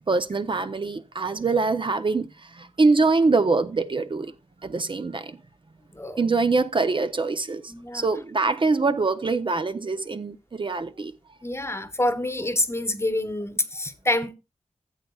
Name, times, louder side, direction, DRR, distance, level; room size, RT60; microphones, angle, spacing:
voice 1, 0.1-4.3 4.6-5.4 6.2-11.1, right 3 dB, 40° right, 0.6 m, -24 dB
voice 2, 7.7-8.1 11.4-14.3, left 1 dB, 20° left, 1.1 m, -27 dB
15.5 x 7.9 x 2.3 m
wide cardioid pair, 105°, 13 cm